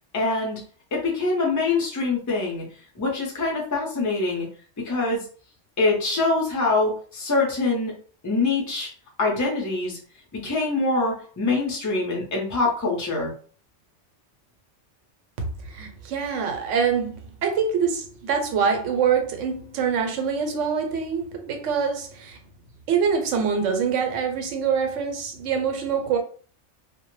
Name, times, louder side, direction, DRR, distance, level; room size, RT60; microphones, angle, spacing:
voice 1, 0.1-0.6 0.9-2.6 3.0-4.5 4.8-5.2 5.8-7.9 8.2-8.9 9.2-10.0 10.3-13.3, left 3 dB, 20° left, 0.5 m, -24 dB
voice 2, 15.6-22.4 22.9-26.2, right 6 dB, 85° right, 0.9 m, -25 dB
2.1 x 2.0 x 3.0 m
omnidirectional pair, 1.3 m